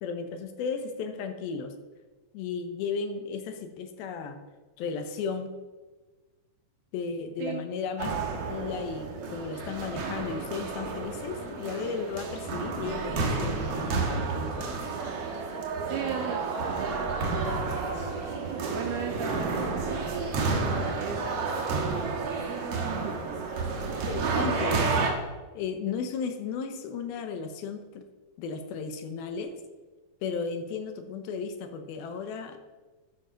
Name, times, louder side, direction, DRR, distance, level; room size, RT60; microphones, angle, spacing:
voice 1, 0.0-1.7 2.3-4.4 4.8-5.5 6.9-8.1 8.5-14.8 23.9-25.2 25.5-28.0 28.4-29.5 30.2-32.6, left 5 dB, 80° left, 7 dB, 2.8 m, -35 dB
sound 1, 8.0-25.1, right 4 dB, 55° right, 2.0 m, -30 dB
voice 2, 15.9-18.3 18.7-20.3 21.0-22.4 22.8-23.2, right 7 dB, 75° right, 3 dB, 1.9 m, -38 dB
12.5 x 6.3 x 5.1 m, 1.3 s
omnidirectional pair, 4.3 m